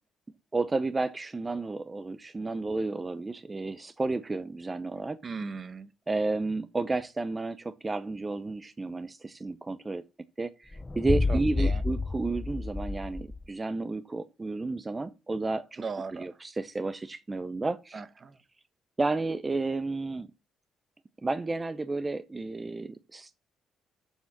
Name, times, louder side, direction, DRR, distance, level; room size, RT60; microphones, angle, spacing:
voice 1, 0.5-5.2 6.1-10.0 10.4-15.8 16.1-18.0 19.0-20.3 21.2-23.3, right 3 dB, 25° right, 0.7 m, -32 dB
voice 2, 5.2-5.9 11.3-11.8 15.8-16.3 17.9-18.4, right 4 dB, 40° right, 1.0 m, -38 dB
sound 1, 10.7-13.5, left 3 dB, 20° left, 0.6 m, -30 dB
7.3 x 6.1 x 7.3 m
cardioid pair, 90°, 0 cm